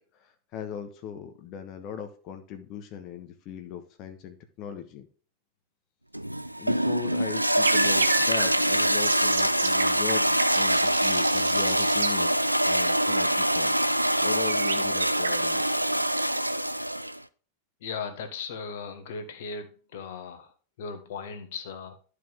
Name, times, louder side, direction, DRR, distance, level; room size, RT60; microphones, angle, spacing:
voice 1, 0.1-5.1 6.6-13.9 14.2-15.9, left 8 dB, 40° left, 7 dB, 1.1 m, -39 dB
Toilet flush, 6.1-17.2, right 1 dB, 90° right, 0.4 m, -24 dB
sound 1, 7.6-12.1 14.5-15.7, right 6 dB, 70° right, 1.0 m, -32 dB
voice 2, 17.8-22.0, left 5 dB, 55° left, 8 dB, 1.5 m, -37 dB
12.5 x 4.9 x 3.5 m, 0.40 s
figure-of-eight pair, 90°, 0 cm